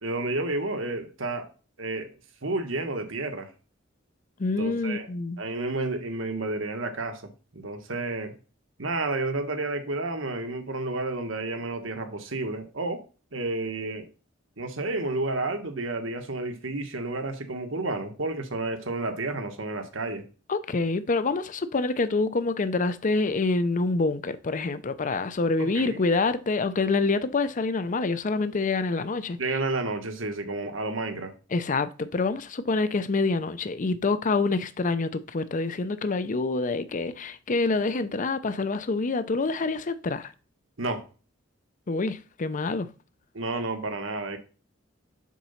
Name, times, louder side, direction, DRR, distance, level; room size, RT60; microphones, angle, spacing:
voice 1, 0.0-1.5 1.8-2.1 2.4-3.5 4.6-5.1 5.4-8.3 8.8-13.0 13.3-14.1 14.6-20.3 25.6-26.0 29.4-31.3 40.8-41.0 43.3-44.4, right 2 dB, 85° right, 1.5 m, -31 dB
voice 2, 4.4-5.4 20.5-29.4 31.5-40.3 41.9-42.9, left 3 dB, 40° left, 0.6 m, -26 dB
7.4 x 3.9 x 5.7 m
head